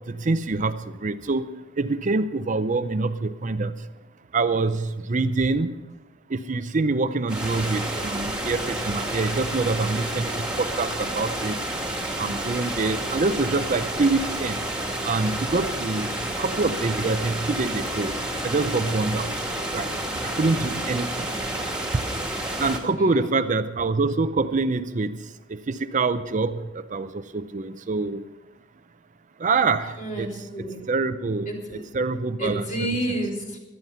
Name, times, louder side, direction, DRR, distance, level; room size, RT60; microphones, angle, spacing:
voice 1, 0.1-1.4 1.8-3.7 4.3-5.7 6.3-11.6 12.2-14.6 15.0-16.1 16.4-18.1 18.4-19.3 19.7-19.9 20.2-21.3 22.6-25.2 25.5-26.6 26.9-28.2 29.4-30.3 30.9-31.5 31.9-33.0, right 3 dB, 40° right, 11 dB, 0.6 m, -25 dB
sound 1, 7.3-22.8, right 1 dB, 5° right, 2.2 m, -30 dB
voice 2, 21.1-21.6 22.9-23.3 29.9-30.8 31.5-31.8 32.4-33.6, right 1 dB, 45° left, 0 dB, 4.4 m, -31 dB
17.0 x 12.0 x 5.7 m, 1.1 s
head